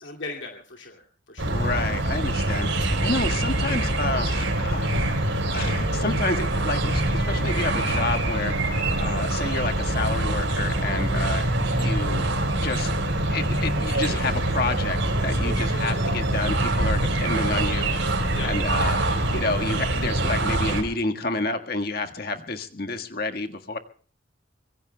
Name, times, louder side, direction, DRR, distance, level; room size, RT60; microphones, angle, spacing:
voice 1, 0.0-1.6 11.2-11.3 18.3-18.5, left 3 dB, 70° left, 0 dB, 2.4 m, -38 dB
sound 1, 1.4-20.8, right 1 dB, 75° right, 4.4 m, -24 dB
voice 2, 1.5-12.2 12.5-12.9 13.3-23.8, left 3 dB, 50° left, 5 dB, 1.6 m, -30 dB
25.5 x 23.0 x 2.3 m, 0.42 s
head